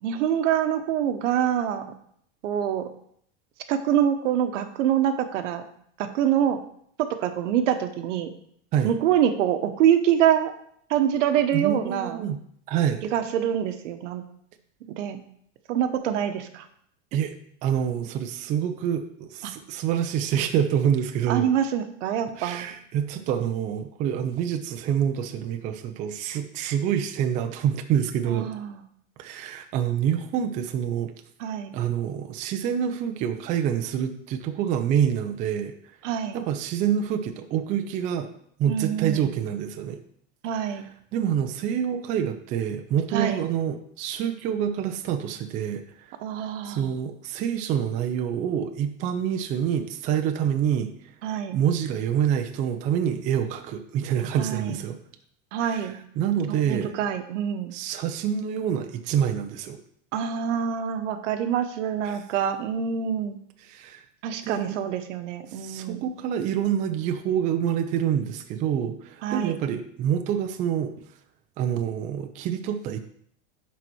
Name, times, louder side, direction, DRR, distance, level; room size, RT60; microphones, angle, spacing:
voice 1, 0.0-1.9 2.4-2.9 3.7-5.6 6.0-6.6 7.0-8.3 8.8-10.5 10.9-12.3 13.1-14.2 14.9-15.2 15.7-16.7 19.4-19.5 21.3-22.7 28.3-28.8 31.4-31.8 36.0-36.4 38.7-39.3 40.4-40.9 43.1-43.4 46.2-46.9 51.2-51.6 54.3-54.8 55.5-56.0 56.7-57.8 60.1-63.4 64.2-66.1 69.2-69.6, right 9 dB, 80° right, 8 dB, 1.1 m, -25 dB
voice 2, 11.5-12.4 12.7-13.1 17.1-17.3 17.6-21.5 22.4-28.5 29.2-31.1 31.7-35.7 36.3-38.3 38.6-40.0 41.1-46.2 46.6-50.9 51.5-55.0 55.6-56.9 57.7-59.8 62.0-62.2 63.7-64.0 64.4-64.8 65.5-70.9 71.6-73.0, right 9 dB, 20° right, 6 dB, 0.4 m, -27 dB
10.5 x 4.1 x 4.5 m, 0.66 s
supercardioid pair, 160°, 36 cm